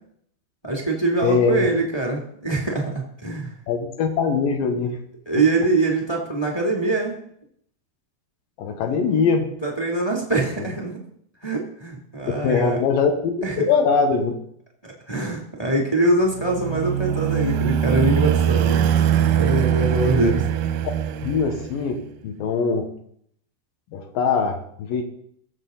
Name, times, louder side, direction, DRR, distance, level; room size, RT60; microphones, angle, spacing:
voice 1, 0.6-3.5 5.2-7.1 9.6-11.0 11.4-12.8 13.4-13.7 14.8-18.9 19.4-20.5, right 2 dB, 10° left, -1 dB, 1.3 m, -23 dB
voice 2, 1.2-1.7 3.7-5.0 8.6-9.4 12.4-13.4 13.7-14.3 20.1-20.4 21.2-22.9 23.9-25.0, left 5 dB, 65° left, 5 dB, 2.6 m, -22 dB
sound 1, 16.2-22.0, right 9 dB, 80° right, 2.0 m, -22 dB
22.0 x 7.5 x 4.0 m, 0.67 s
omnidirectional pair, 4.8 m